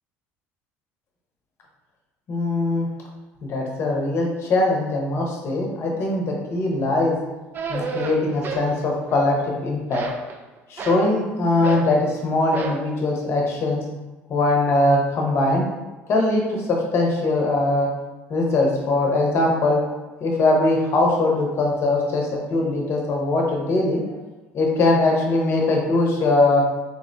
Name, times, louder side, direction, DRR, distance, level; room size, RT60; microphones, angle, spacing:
voice 1, 2.3-2.9 3.4-7.2 7.7-9.4 9.6-10.0 10.7-13.8 14.3-15.6 16.1-16.6 16.9-17.9 18.3-19.8 20.2-24.0 24.5-26.6, left 2 dB, 50° left, -1 dB, 0.7 m, -21 dB
sound 1, 7.5-8.7 9.0-9.5 9.9-11.1 11.6-11.9 12.5-12.9, right 4 dB, 40° right, 0.3 m, -30 dB
3.5 x 2.1 x 2.5 m, 1.1 s
supercardioid pair, 90°, 5 cm